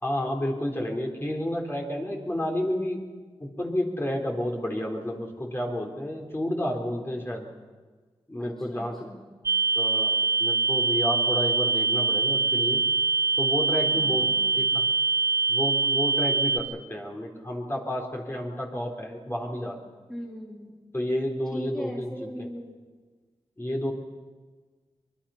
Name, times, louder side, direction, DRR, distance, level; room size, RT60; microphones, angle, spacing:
voice 1, 0.0-3.0 3.4-7.5 8.3-9.1 9.8-12.8 13.4-14.8 15.5-19.8 20.9-22.5 23.6-23.9, left 1 dB, 20° left, 1 dB, 4.0 m, -31 dB
voice 2, 8.4-9.3 13.9-14.6 20.1-20.8 21.5-22.8, equal, 5° left, -2 dB, 3.2 m, -40 dB
sound 1, 9.5-16.6, right 4 dB, 25° right, 0.8 m, -24 dB
24.5 x 22.0 x 5.8 m, 1.4 s
wide cardioid pair, 80°, 11 cm